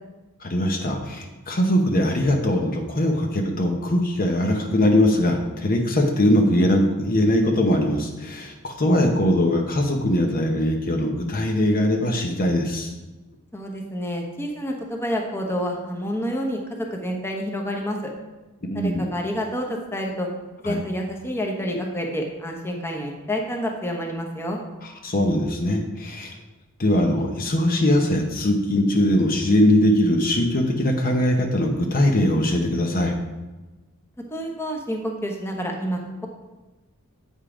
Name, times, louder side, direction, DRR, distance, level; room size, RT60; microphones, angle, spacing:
voice 1, 0.4-12.9 18.7-19.1 20.6-20.8 24.8-26.4 26.8-33.1, left 1 dB, 40° left, 2 dB, 0.9 m, -21 dB
voice 2, 13.5-18.1 18.7-20.3 20.6-24.6 34.3-36.3, equal, 10° left, 1 dB, 1.0 m, -28 dB
8.4 x 5.5 x 5.0 m, 1.1 s
head